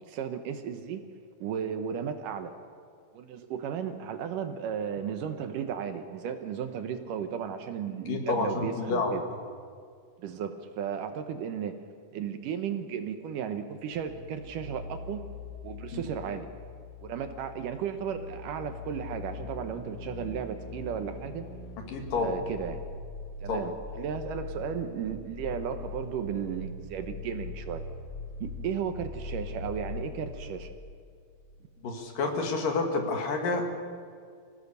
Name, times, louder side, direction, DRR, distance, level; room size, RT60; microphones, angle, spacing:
voice 1, 0.1-1.0 1.4-2.5 3.1-9.2 10.2-11.8 12.1-15.2 15.6-16.5 17.0-21.5 22.2-22.8 23.4-27.8 28.4-30.7, right 8 dB, 70° right, 8 dB, 2.4 m, -34 dB
voice 2, 8.1-8.5 8.8-9.2 15.9-16.0 21.8-22.4 23.5-23.7 31.8-33.7, left 3 dB, 70° left, 3 dB, 3.6 m, -29 dB
sound 1, 13.9-31.4 31.7-31.8, left 3 dB, 45° left, 8.3 m, -42 dB
25.0 x 16.5 x 6.8 m, 2.2 s
omnidirectional pair, 4.2 m